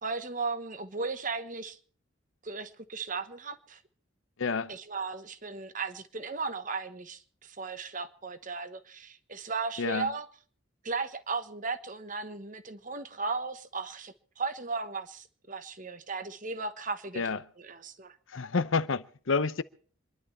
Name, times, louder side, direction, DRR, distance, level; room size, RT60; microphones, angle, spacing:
voice 1, 0.0-1.8 2.4-3.8 4.7-10.3 10.8-18.2, right 4 dB, 40° right, 1.2 m, -36 dB
voice 2, 4.4-4.7 9.8-10.1 17.2-17.4 18.3-19.6, left 4 dB, 70° left, 0.7 m, -29 dB
26.5 x 11.5 x 4.3 m
head